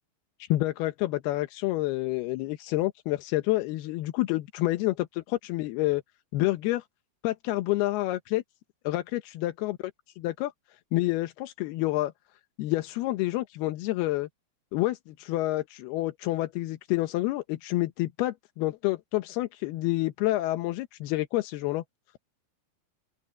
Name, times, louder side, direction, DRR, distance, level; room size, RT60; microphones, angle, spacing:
voice 1, 0.4-6.0 6.3-6.8 7.2-8.4 8.8-9.8 10.2-10.5 10.9-12.1 12.6-14.3 14.7-21.8, left 17 dB, 85° left, 2.9 m, -28 dB
open air
omnidirectional pair, 4.4 m